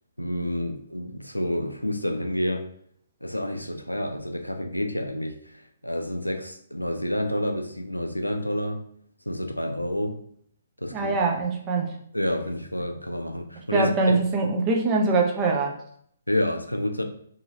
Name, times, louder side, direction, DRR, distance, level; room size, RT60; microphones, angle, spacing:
voice 1, 0.2-2.6 3.2-8.8 9.3-10.2 10.8-11.1 12.1-14.2 16.3-17.0, left 1 dB, 85° left, 5 dB, 0.4 m, -29 dB
voice 2, 10.9-12.0 13.7-15.7, right 3 dB, 20° right, 1 dB, 0.5 m, -23 dB
2.8 x 2.7 x 2.7 m, 0.65 s
figure-of-eight pair, 130°, 0 cm